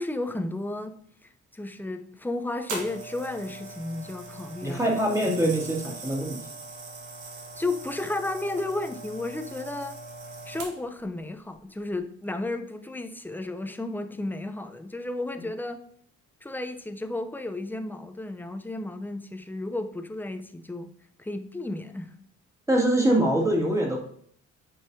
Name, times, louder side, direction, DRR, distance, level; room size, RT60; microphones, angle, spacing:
voice 1, 0.0-4.8 5.2-5.3 7.6-10.0 10.5-15.8 16.4-20.9 21.2-22.1, left 2 dB, 5° left, 7 dB, 0.6 m, -33 dB
sound 1, 2.7-11.0 11.8-12.0, right 3 dB, 80° right, 1.4 m, -41 dB
voice 2, 4.6-6.4 15.4-15.5 22.7-24.0, right 1 dB, 10° right, -2 dB, 2.2 m, -24 dB
8.6 x 5.4 x 2.7 m, 0.62 s
cardioid pair, 90°, 30 cm